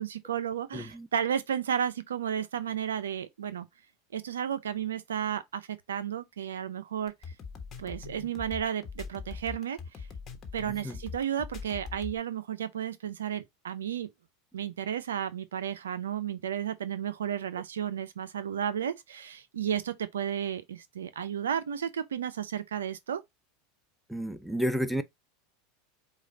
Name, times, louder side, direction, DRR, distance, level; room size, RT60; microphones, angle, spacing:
voice 1, 0.0-3.7 4.1-7.1 7.8-9.8 10.5-14.1 14.5-23.2, right 9 dB, 80° right, 0.5 m, -33 dB
voice 2, 0.7-1.1 10.6-11.0 24.1-25.0, equal, ahead, 0.6 m, -31 dB
sound 1, 7.1-12.2, left 5 dB, 35° left, 1.2 m, -42 dB
4.9 x 2.4 x 3.8 m
hypercardioid pair, 90°, 0 cm